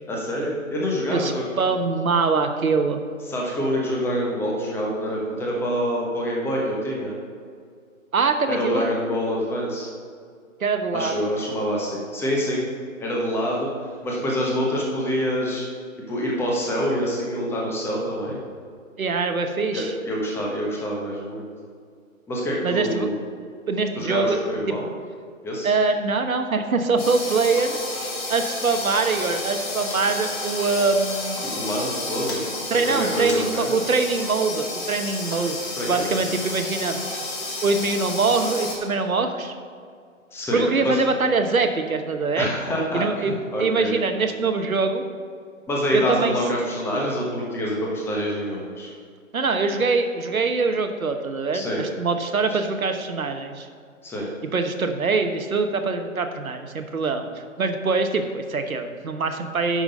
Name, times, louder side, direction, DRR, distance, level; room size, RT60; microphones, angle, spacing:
voice 1, 0.1-1.5 3.3-7.1 8.5-9.9 10.9-12.6 13.0-13.7 14.0-15.6 16.0-18.4 19.7-21.5 22.3-23.2 23.9-24.9 25.4-25.7 31.5-32.4 32.8-33.8 35.8-36.2 40.3-41.0 42.4-43.9 45.7-48.9 51.5-51.8 52.5-52.6 54.0-54.3, equal, 5° left, -3 dB, 1.1 m, -26 dB
voice 2, 1.1-3.0 8.1-8.9 10.6-11.2 19.0-19.9 22.6-23.1 23.7-24.4 25.6-27.8 28.3-31.4 32.7-35.6 35.9-37.0 37.6-39.5 40.5-42.5 42.9-45.0 45.9-46.4 49.3-53.7 54.5-57.2 57.6-59.8, right 4 dB, 85° right, 6 dB, 1.2 m, -23 dB
sound 1, 27.0-38.8, left 2 dB, 25° left, 1.7 m, -31 dB
10.0 x 6.1 x 5.4 m, 2.2 s
figure-of-eight pair, 140°, 41 cm